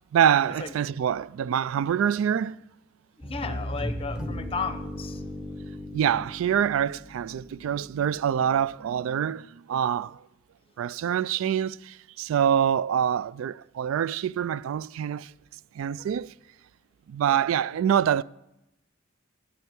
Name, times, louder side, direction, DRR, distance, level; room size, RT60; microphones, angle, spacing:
voice 1, 0.1-2.6 5.9-10.2 10.8-15.3 15.8-16.3 17.1-18.2, right 9 dB, 85° right, 0.3 m, -25 dB
voice 2, 3.2-5.2, left 4 dB, 30° left, 0.8 m, -34 dB
sound 1, 3.2-8.0, equal, 5° right, 1.4 m, -36 dB
9.2 x 8.8 x 8.3 m
head